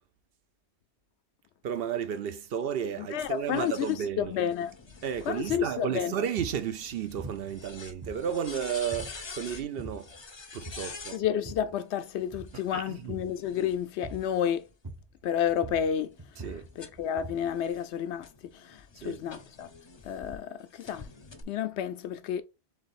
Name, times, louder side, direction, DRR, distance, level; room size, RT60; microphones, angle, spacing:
voice 1, 1.6-4.3 5.0-10.1 10.5-11.2 12.7-13.2 16.4-16.7 19.0-19.2, right 8 dB, 65° right, 0.8 m, -33 dB
voice 2, 3.0-4.7 5.3-6.2 11.1-14.7 15.2-16.4 16.8-19.7 20.0-21.1 21.5-22.4, left 9 dB, 85° left, 0.9 m, -31 dB
sound 1, 3.2-11.2 12.4-14.7 15.3-20.4 20.8-21.4, left 4 dB, 30° left, 0.6 m, -48 dB
sound 2, 5.5-5.8 6.4-6.7 7.2-7.7 8.0-8.5 8.9-9.2 9.6-10.1 10.6-11.0 11.2-11.8 12.2-12.6 13.1-13.4 14.0-14.4 14.8-15.2 15.5-17.6, right 2 dB, 25° right, 0.5 m, -43 dB
3.8 x 3.3 x 4.0 m
omnidirectional pair, 1.1 m